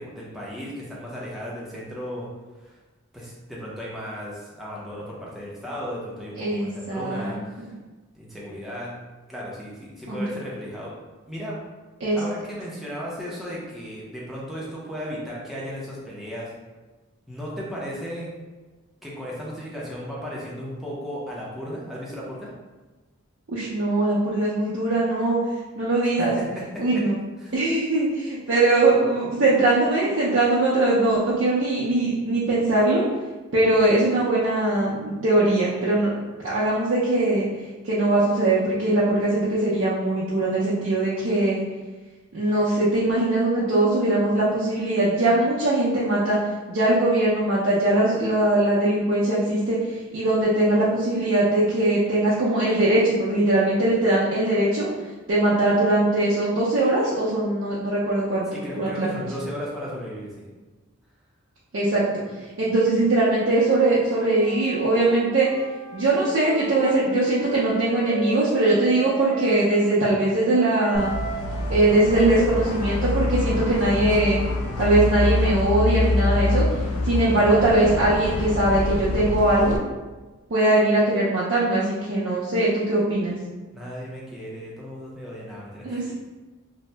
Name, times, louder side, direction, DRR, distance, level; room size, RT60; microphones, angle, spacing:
voice 1, 0.0-2.3 2.6-2.8 3.1-7.7 8.1-8.9 9.3-10.9 11.2-11.6 12.2-16.5 17.3-18.3 19.0-22.5 26.2-27.0 27.4-27.6 58.5-60.5 83.7-86.1, equal, ahead, -6 dB, 0.5 m, -35 dB
voice 2, 6.4-7.7 10.1-10.2 12.0-12.2 23.5-25.4 25.8-26.3 26.8-27.1 27.5-33.0 33.5-36.1 36.4-37.5 37.8-41.6 42.3-46.4 46.7-49.8 50.1-54.9 55.3-58.5 58.7-59.2 61.7-62.0 62.6-65.5 65.9-71.1 71.7-74.4 74.8-76.6 77.0-79.8 80.5-83.4 85.8-86.1, right 2 dB, 55° right, -8 dB, 0.5 m, -21 dB
Wind instrument woodwind instrument, 63.4-69.8 70.5-76.5, right 1 dB, 25° left, 0.9 m, -38 dB
sound 1, 70.9-79.8, left 2 dB, 90° left, 0.4 m, -25 dB
2.7 x 2.0 x 3.2 m, 1.2 s
head